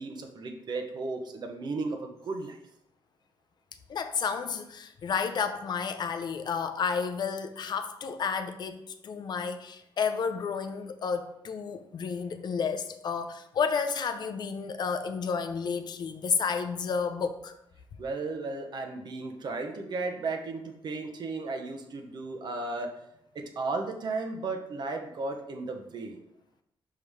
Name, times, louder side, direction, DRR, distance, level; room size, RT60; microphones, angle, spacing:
voice 1, 0.0-2.6 18.0-23.0 23.3-26.2, right 3 dB, 50° right, 4 dB, 0.9 m, -35 dB
voice 2, 3.9-8.8 9.0-17.6, left 6 dB, 50° left, 9 dB, 0.5 m, -31 dB
5.5 x 4.8 x 3.5 m, 0.78 s
cardioid pair, 120°, 9 cm